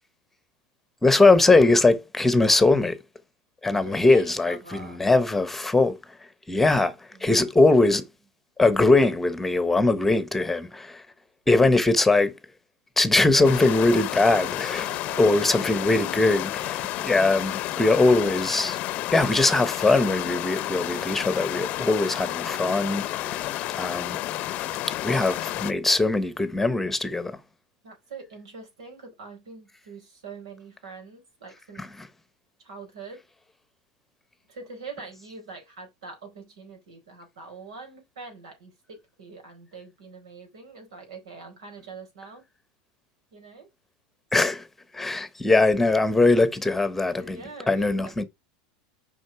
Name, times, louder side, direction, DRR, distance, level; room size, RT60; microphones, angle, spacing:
voice 1, 1.0-3.0 3.6-5.9 6.5-6.9 7.2-8.0 8.6-11.0 11.5-12.3 13.0-14.9 15.2-18.8 19.1-24.2 24.9-27.4 31.8-31.9 44.3-44.6 44.9-47.4 47.7-48.2, left 2 dB, 5° left, 1.0 m, -21 dB
voice 2, 3.7-5.1 7.1-7.9 14.9-15.3 27.8-31.9 32.6-33.2 34.5-42.4 43.3-43.7 47.2-48.3, right 4 dB, 90° right, 4.6 m, -44 dB
sound 1, 13.4-25.7, left 15 dB, 45° left, 0.7 m, -31 dB
6.4 x 5.4 x 4.6 m
supercardioid pair, 125°, 3 cm